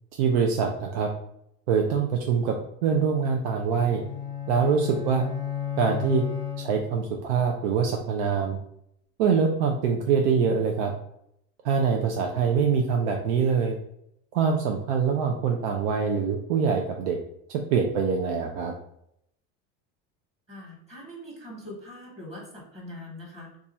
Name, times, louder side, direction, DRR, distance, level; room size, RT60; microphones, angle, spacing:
voice 1, 0.2-1.1 1.7-2.6 2.8-4.0 4.5-5.2 5.8-6.2 6.6-8.6 9.2-10.9 11.6-13.8 14.3-17.2 17.7-18.7, right 6 dB, 90° right, 2 dB, 0.5 m, -24 dB
sound 1, 3.6-7.2, left 9 dB, 15° left, 0.5 m, -33 dB
voice 2, 20.5-23.6, left 1 dB, 20° right, -2 dB, 1.2 m, -42 dB
2.6 x 2.4 x 4.1 m, 0.75 s
supercardioid pair, 115°, 30 cm